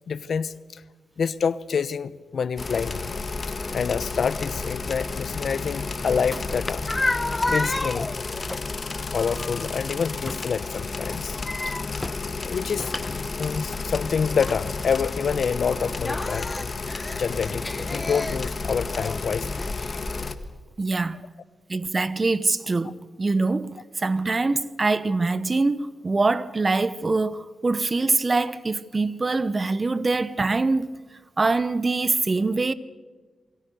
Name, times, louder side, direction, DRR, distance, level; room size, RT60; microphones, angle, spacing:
voice 1, 0.1-0.8 1.2-3.1 3.7-6.9 7.5-8.3 9.1-11.4 11.6-11.7 12.4-16.5 17.1-17.6 17.9-19.5, left 6 dB, 65° left, 0.9 m, -27 dB
sound 1, 2.6-20.3, left 4 dB, 40° left, 1.7 m, -32 dB
sound 2, 5.8-20.5, left 2 dB, 20° left, 1.0 m, -33 dB
voice 2, 20.8-21.2 21.7-30.9 31.4-32.7, right 3 dB, 30° right, 1.0 m, -24 dB
27.5 x 22.5 x 6.9 m
cardioid pair, 90°, 0 cm